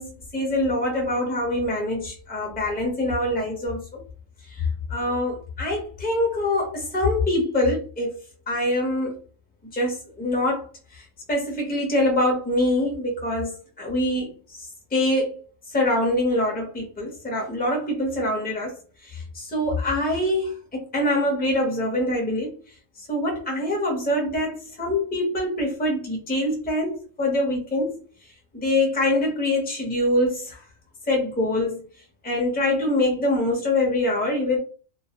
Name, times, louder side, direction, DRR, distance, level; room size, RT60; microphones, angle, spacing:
voice 1, 0.0-4.0 4.5-8.2 8.5-9.2 9.7-10.7 10.9-13.5 13.8-15.4 15.7-18.8 19.0-22.6 23.0-28.0 28.5-30.6 31.1-31.8 32.2-34.6, left 1 dB, 10° left, 0.5 m, -24 dB
2.3 x 2.1 x 2.8 m
omnidirectional pair, 1.4 m